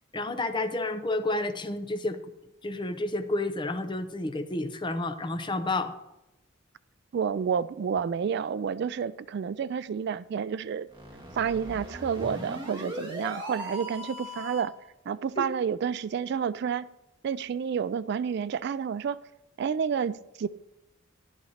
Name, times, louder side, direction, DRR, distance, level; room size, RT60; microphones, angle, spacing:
voice 1, 0.1-2.2 2.6-6.0 15.4-15.5, left 2 dB, 25° left, 0.7 m, -30 dB
voice 2, 7.1-10.9 11.4-14.7 15.1-16.9 17.2-19.2 19.6-20.5, right 7 dB, 55° right, 0.3 m, -30 dB
sound 1, 10.9-14.8, equal, 25° right, 2.0 m, -39 dB
13.5 x 12.0 x 2.9 m
head